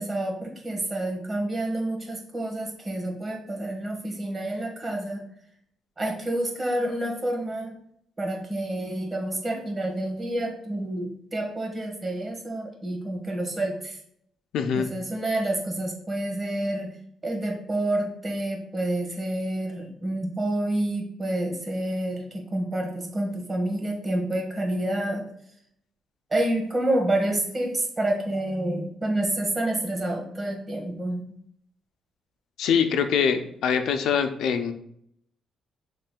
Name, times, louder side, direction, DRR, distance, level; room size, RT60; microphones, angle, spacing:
voice 1, 0.0-5.2 6.0-7.7 8.2-14.0 14.7-16.9 17.2-25.3 26.3-31.2, right 1 dB, 30° right, 2 dB, 1.4 m, -28 dB
voice 2, 14.5-14.9 32.6-34.7, left 7 dB, 80° left, 7 dB, 0.5 m, -23 dB
7.2 x 3.2 x 2.2 m, 0.69 s
cardioid pair, 90°, 0 cm